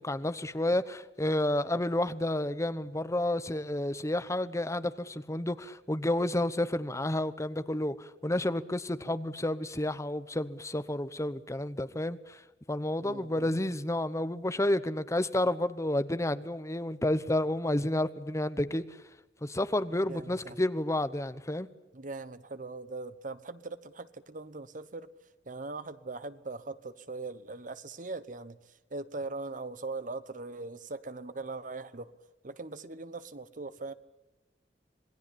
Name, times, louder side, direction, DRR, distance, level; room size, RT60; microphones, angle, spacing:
voice 1, 0.0-12.4 12.7-18.8 19.4-21.7, left 1 dB, 15° left, 12 dB, 1.0 m, -30 dB
voice 2, 13.0-13.5 20.1-20.6 21.9-25.1 25.4-32.1 32.4-33.9, right 3 dB, 50° right, 14 dB, 1.1 m, -40 dB
27.0 x 19.0 x 8.7 m, 1.0 s
head